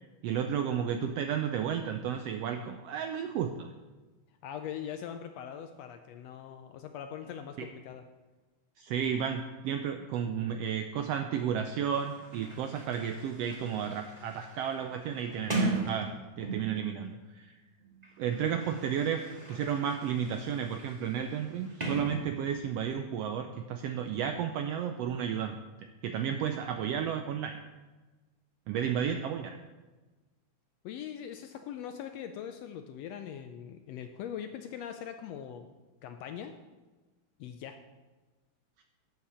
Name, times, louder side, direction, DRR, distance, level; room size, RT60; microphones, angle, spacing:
voice 1, 0.2-3.7 7.6-7.7 8.8-17.5 18.2-19.2 19.5-25.6 26.0-27.6 28.7-29.6 38.8-38.9, right 8 dB, 90° right, 6 dB, 1.4 m, -32 dB
voice 2, 4.4-8.0 30.8-35.7 36.0-36.5 37.4-37.8, left 9 dB, 80° left, 7 dB, 1.5 m, -41 dB
Sliding door, 11.8-16.9 17.8-22.8, right 2 dB, 20° right, 1.0 m, -39 dB
11.5 x 7.8 x 4.3 m, 1.2 s
omnidirectional pair, 3.4 m